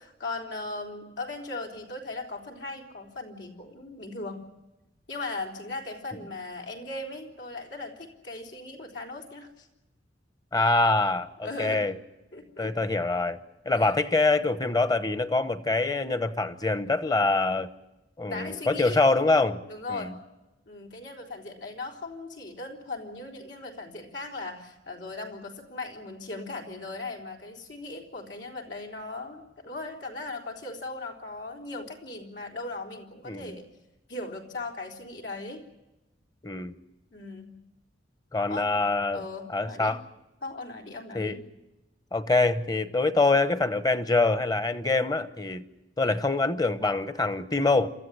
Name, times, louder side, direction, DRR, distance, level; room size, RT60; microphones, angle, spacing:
voice 1, 0.0-4.4 5.1-9.7 11.4-11.8 12.3-12.7 13.7-13.9 18.3-19.0 19.7-20.2 20.7-33.7 34.1-35.6 37.1-37.5 38.5-38.7 39.1-40.0 40.4-41.4, left 2 dB, 80° left, 1 dB, 3.9 m, -38 dB
voice 2, 10.5-11.9 12.6-13.4 13.6-17.7 18.2-19.6 19.9-20.1 33.2-33.6 36.4-36.7 38.3-39.2 39.5-40.0 41.1-41.4 42.1-45.6 46.0-47.9, left 3 dB, 20° left, 13 dB, 0.9 m, -25 dB
28.0 x 13.5 x 9.9 m, 1.0 s
head